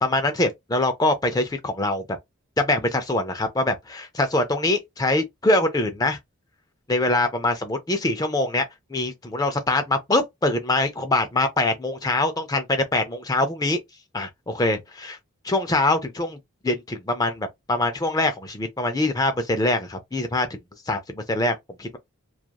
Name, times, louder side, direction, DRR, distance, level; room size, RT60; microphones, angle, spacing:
voice 1, 0.0-2.2 2.6-6.2 6.9-8.6 8.9-13.8 14.1-15.2 15.4-16.4 16.6-20.5 20.9-22.0, left 2 dB, 15° left, 0.4 m, -24 dB
2.9 x 2.3 x 2.2 m
head